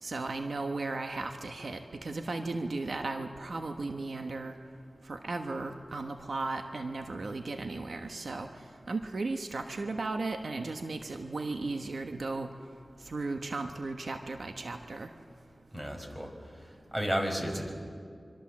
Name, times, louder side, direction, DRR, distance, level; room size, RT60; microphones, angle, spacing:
voice 1, 0.0-4.5 5.1-8.5 8.9-12.5 13.1-15.1, right 3 dB, 75° right, 5 dB, 1.2 m, -35 dB
voice 2, 15.7-17.7, equal, 20° right, 3 dB, 5.2 m, -33 dB
26.0 x 24.5 x 7.5 m, 2.3 s
wide cardioid pair, 50°, 0 cm